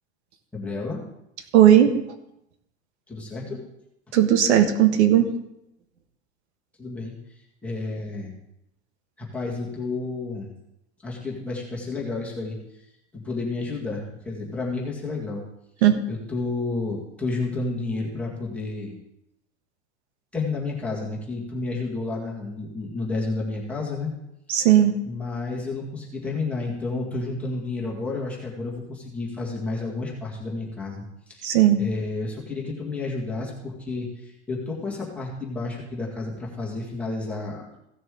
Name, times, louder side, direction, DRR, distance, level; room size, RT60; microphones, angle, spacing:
voice 1, 0.5-1.0 3.1-3.6 6.8-7.1 7.6-8.3 9.2-10.5 11.0-12.6 13.1-15.4 16.1-18.9 20.3-24.1 24.5-24.6 25.1-31.0 31.3-37.7, left 3 dB, 5° left, -4 dB, 1.9 m, -31 dB
voice 2, 1.5-1.9 4.1-5.3 15.8-16.0 24.5-24.9 31.4-31.8, right 11 dB, 90° right, 8 dB, 1.5 m, -16 dB
16.0 x 6.8 x 3.8 m, 0.83 s
supercardioid pair, 170°, 33 cm